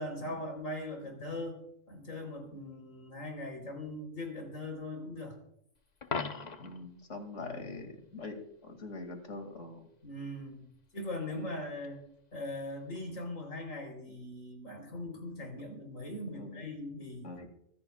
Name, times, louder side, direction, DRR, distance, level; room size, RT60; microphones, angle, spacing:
voice 1, 0.0-1.6 1.9-5.4 7.4-7.6 10.0-10.7 10.9-12.0 12.3-17.3, left 1 dB, 90° left, 3 dB, 4.3 m, -40 dB
Coin (dropping), 6.0-6.9 12.9-13.1, left 5 dB, 35° left, 0.9 m, -37 dB
voice 2, 6.6-9.8 16.3-16.6 17.2-17.5, left 3 dB, 70° left, 5 dB, 2.7 m, -43 dB
24.5 x 15.0 x 2.4 m, 0.75 s
omnidirectional pair, 1.3 m